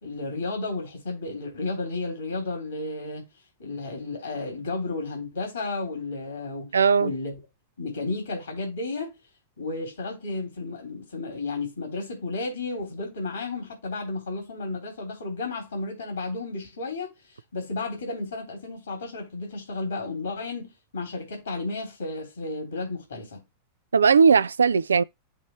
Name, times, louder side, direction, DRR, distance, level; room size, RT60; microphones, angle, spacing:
voice 1, 0.0-3.3 3.6-7.4 7.8-9.2 9.6-17.1 17.5-23.4, left 3 dB, 75° left, 3.6 m, -33 dB
voice 2, 6.7-7.1 23.9-25.0, right 6 dB, 70° right, 0.3 m, -18 dB
6.7 x 3.0 x 5.7 m
figure-of-eight pair, 90°, 0 cm